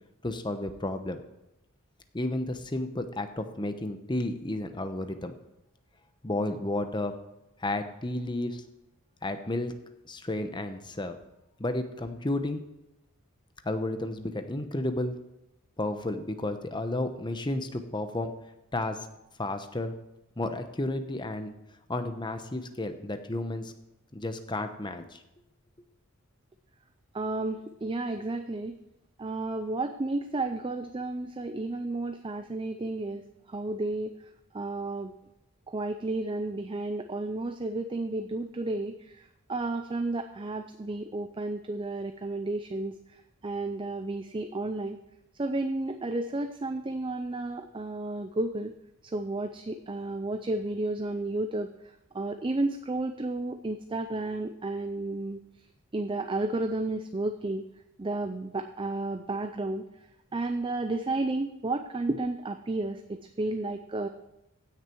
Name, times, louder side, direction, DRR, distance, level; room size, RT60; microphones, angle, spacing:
voice 1, 0.2-1.2 2.1-5.3 6.2-7.1 7.6-8.6 9.2-9.7 10.0-11.2 11.6-12.6 13.6-15.1 15.8-18.3 18.7-19.1 19.4-19.9 20.4-21.5 21.9-23.7 24.1-25.2, left 2 dB, 20° left, 8 dB, 0.9 m, -32 dB
voice 2, 27.1-28.8 29.2-33.2 33.5-34.1 34.5-35.1 35.7-42.9 43.4-45.0 45.4-48.7 49.1-51.7 52.1-55.4 55.9-57.6 58.0-59.8 60.3-64.1, right 2 dB, 25° right, 8 dB, 0.5 m, -32 dB
16.0 x 6.6 x 4.6 m, 0.90 s
head